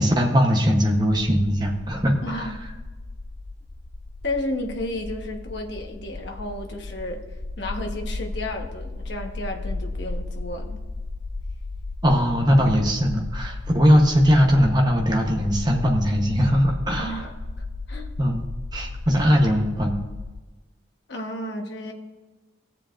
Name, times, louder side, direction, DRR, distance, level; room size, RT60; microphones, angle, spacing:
voice 1, 0.0-2.5 12.0-17.2 18.2-20.0, equal, 20° right, 1 dB, 0.9 m, -20 dB
sound 1, 1.0-20.4, left 2 dB, 25° left, 0.3 m, -35 dB
voice 2, 2.2-2.6 4.2-7.2 7.6-10.8 17.0-17.4 17.9-18.1 21.1-21.9, left 1 dB, 65° left, 3 dB, 1.2 m, -32 dB
16.5 x 7.4 x 2.5 m, 1.2 s
head